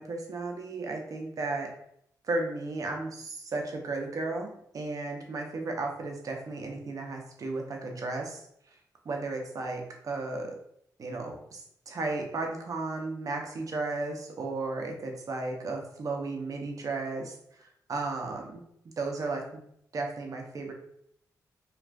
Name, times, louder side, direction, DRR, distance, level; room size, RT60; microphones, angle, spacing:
voice 1, 0.0-1.7 2.3-4.5 4.7-8.4 9.0-10.6 11.0-17.3 17.6-18.6 19.0-19.6 19.9-20.7, right 3 dB, 55° right, 2 dB, 0.7 m, -34 dB
2.5 x 2.4 x 3.3 m, 0.71 s
cardioid pair, 75°, 7 cm